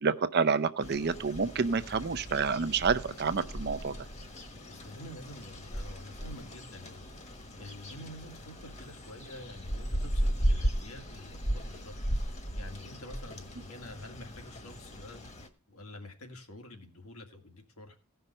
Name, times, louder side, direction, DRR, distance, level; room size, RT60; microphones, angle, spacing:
voice 1, 0.0-3.9, right 5 dB, 45° right, 12 dB, 0.5 m, -28 dB
sound 1, 0.8-15.5, equal, 30° left, 1.3 m, -36 dB
voice 2, 4.7-7.0 7.6-12.0 12.6-15.2 15.7-18.0, left 1 dB, 80° left, 4 dB, 2.1 m, -48 dB
16.0 x 5.6 x 5.3 m, 0.37 s
head